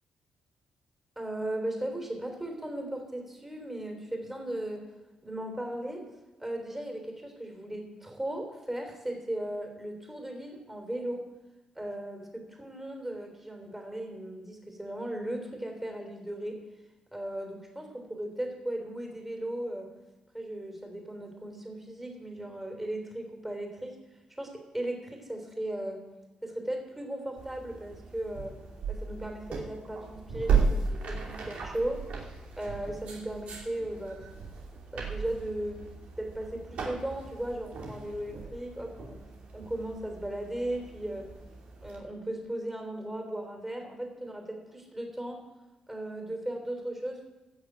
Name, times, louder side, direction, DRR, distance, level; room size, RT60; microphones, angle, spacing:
voice 1, 1.1-4.9 5.2-6.1 6.4-11.3 11.7-16.6 17.1-19.9 20.3-24.0 24.3-26.0 26.4-28.6 28.9-34.3 34.9-35.8 36.2-39.2 39.5-41.3 41.8-45.4 45.9-47.3, right 1 dB, 10° right, 3 dB, 3.3 m, -37 dB
sound 1, 27.4-42.0, right 5 dB, 75° right, 2.9 m, -35 dB
15.5 x 6.5 x 7.9 m, 1.1 s
cardioid pair, 85°, 2 cm